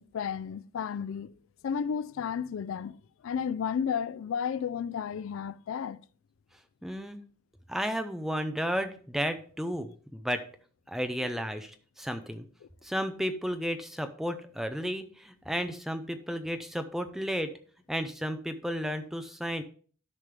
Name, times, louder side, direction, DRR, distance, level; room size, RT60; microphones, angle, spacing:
voice 1, 0.0-1.3 1.6-3.0 3.2-6.0 11.2-11.3, left 7 dB, 80° left, 0.3 m, -32 dB
voice 2, 6.8-7.2 7.7-10.4 10.9-12.4 12.8-17.5 17.9-19.6, equal, ahead, 0.6 m, -33 dB
12.5 x 5.2 x 3.3 m
head